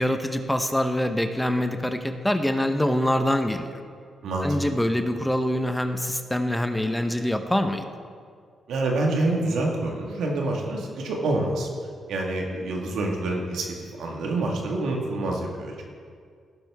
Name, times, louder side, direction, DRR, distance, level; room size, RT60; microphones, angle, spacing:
voice 1, 0.0-3.8 4.4-7.9, left 1 dB, 5° left, 7 dB, 0.8 m, -25 dB
voice 2, 4.2-4.6 8.7-11.7 12.1-15.8, right 2 dB, 80° right, 0 dB, 1.6 m, -27 dB
16.5 x 6.0 x 3.5 m, 2.1 s
cardioid pair, 65°, 0 cm